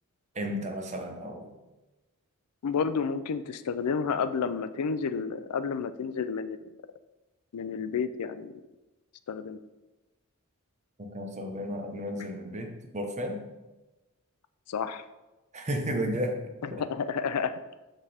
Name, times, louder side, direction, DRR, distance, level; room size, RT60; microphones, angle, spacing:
voice 1, 0.3-1.5 11.0-13.4 15.5-16.4 16.7-16.8, equal, 30° right, 3 dB, 0.9 m, -33 dB
voice 2, 2.6-6.6 7.5-8.5 9.3-9.6 14.7-15.0 16.6-17.6, left 6 dB, 85° left, 12 dB, 0.4 m, -30 dB
6.1 x 5.3 x 4.2 m, 1.1 s
head